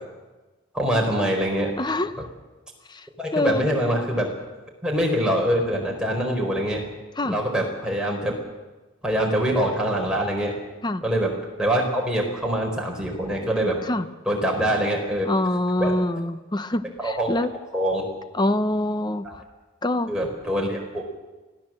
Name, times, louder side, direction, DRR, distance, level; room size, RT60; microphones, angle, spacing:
voice 1, 0.7-1.7 3.2-4.3 4.8-6.8 7.3-8.3 9.0-10.5 11.0-11.3 11.6-13.8 14.3-15.3 15.8-15.9 17.0-17.5 17.7-18.0 19.2-19.3 20.1-21.0, equal, 5° right, -1 dB, 4.5 m, -24 dB
voice 2, 1.8-2.3 2.9-3.1 3.3-3.6 7.2-7.4 10.8-11.0 13.9-14.1 15.2-17.5 18.3-19.4 19.8-20.1, left 1 dB, 20° left, 11 dB, 0.8 m, -25 dB
24.5 x 16.5 x 7.7 m, 1.2 s
head